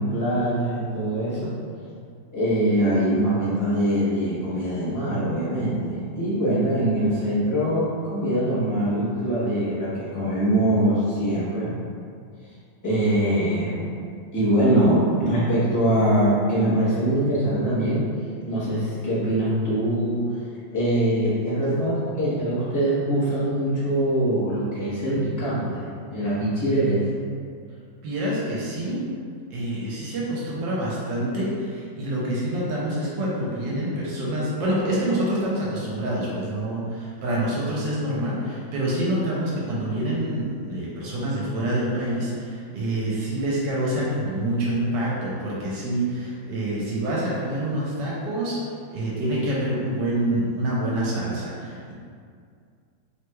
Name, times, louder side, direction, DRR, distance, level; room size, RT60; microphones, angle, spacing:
voice 1, 0.0-1.5 2.3-11.7 12.8-13.9 14.3-18.0 18.4-20.2 20.7-27.0, right 1 dB, 25° left, -11 dB, 0.4 m, -23 dB
voice 2, 28.0-29.0 29.5-48.6 48.9-51.9, right 1 dB, 80° right, -6 dB, 1.3 m, -26 dB
3.3 x 3.0 x 2.2 m, 2.3 s
omnidirectional pair, 2.0 m